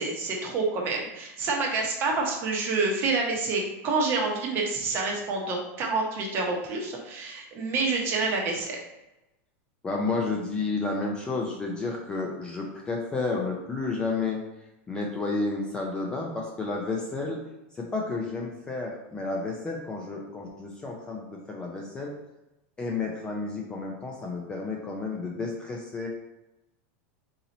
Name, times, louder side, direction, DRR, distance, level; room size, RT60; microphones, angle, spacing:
voice 1, 0.0-8.8, right 3 dB, 30° right, 0 dB, 0.9 m, -28 dB
voice 2, 9.8-14.4 14.9-17.4 17.7-22.1 22.8-26.1, left 3 dB, 10° left, -1 dB, 0.4 m, -31 dB
4.0 x 2.9 x 4.0 m, 0.97 s
supercardioid pair, 160°, 7 cm